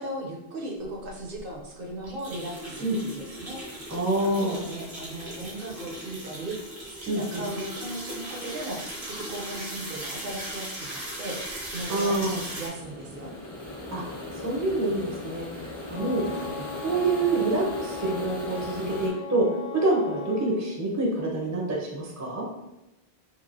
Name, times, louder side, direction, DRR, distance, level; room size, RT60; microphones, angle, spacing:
voice 1, 0.0-3.9 4.2-8.8 9.1-13.3 16.2-16.7, right 1 dB, 65° right, -1 dB, 0.8 m, -37 dB
sound 1, 1.1-1.2 1.4-1.5 2.0-12.7, right 1 dB, 85° right, 1.3 m, -38 dB
sound 2, 3.4-19.1, left 2 dB, 35° left, 0.6 m, -40 dB
voice 2, 3.9-4.6 7.1-7.4 11.9-12.5 13.9-14.0 14.4-16.4 16.8-19.5 19.7-22.4, right 2 dB, 20° right, -2 dB, 0.5 m, -27 dB
Wind instrument woodwind instrument, 15.9-20.5, left 4 dB, 90° left, 0.9 m, -39 dB
3.0 x 2.7 x 2.6 m, 0.93 s
omnidirectional pair, 1.1 m